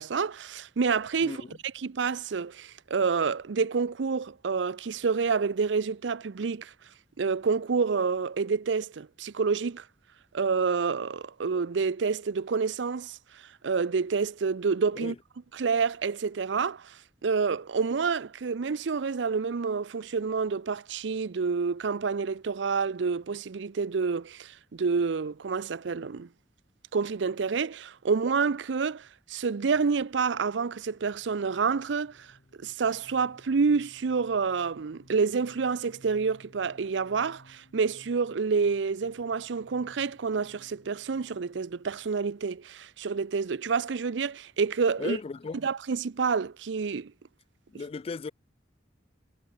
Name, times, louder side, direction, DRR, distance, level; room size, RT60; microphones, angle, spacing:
voice 1, 0.0-1.4 1.7-6.7 7.2-9.8 10.3-13.2 13.6-15.1 15.5-26.3 26.9-32.3 32.6-45.2 45.6-47.1, right 5 dB, 70° right, 0.5 m, -28 dB
voice 2, 1.2-1.6 15.0-15.2 45.0-45.6 47.7-48.3, left 4 dB, 35° left, 0.3 m, -36 dB
sound 1, 30.6-43.1, left 1 dB, 60° left, 3.6 m, -59 dB
head